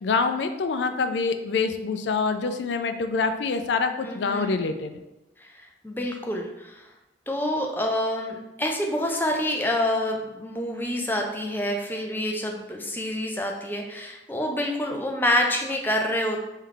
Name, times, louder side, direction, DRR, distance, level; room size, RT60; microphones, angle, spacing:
voice 1, 0.0-5.0, left 4 dB, 80° left, 8 dB, 0.4 m, -26 dB
voice 2, 4.0-4.6 5.4-6.8 7.3-16.4, left 1 dB, 10° left, 1 dB, 0.5 m, -27 dB
3.3 x 3.2 x 3.8 m, 0.96 s
head